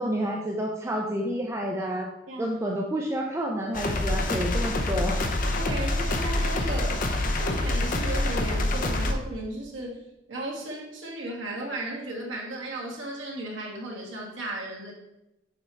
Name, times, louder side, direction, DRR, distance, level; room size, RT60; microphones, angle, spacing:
voice 1, 0.0-2.1 2.4-5.2, equal, 15° right, 0 dB, 0.5 m, -29 dB
voice 2, 2.3-2.6 5.5-10.0 10.3-14.9, right 1 dB, 80° right, -2 dB, 1.6 m, -35 dB
sound 1, 3.7-9.1, left 1 dB, 45° left, 0.6 m, -26 dB
6.7 x 4.5 x 3.3 m, 0.92 s
head